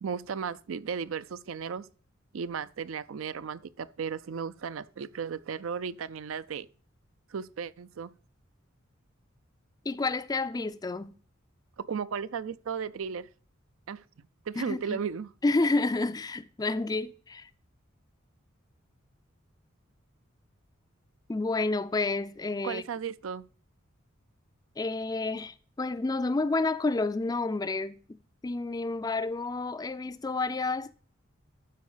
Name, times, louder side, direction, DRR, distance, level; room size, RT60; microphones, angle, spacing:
voice 1, 0.0-1.9 2.3-6.7 7.3-8.1 11.8-13.3 13.9-14.0 14.5-15.3 22.6-23.4, right 6 dB, 70° right, 0.4 m, -35 dB
voice 2, 9.9-11.1 14.6-15.0 15.4-17.5 21.3-22.8 24.8-28.0 28.4-30.9, left 3 dB, 20° left, 0.4 m, -30 dB
12.5 x 4.6 x 4.9 m
head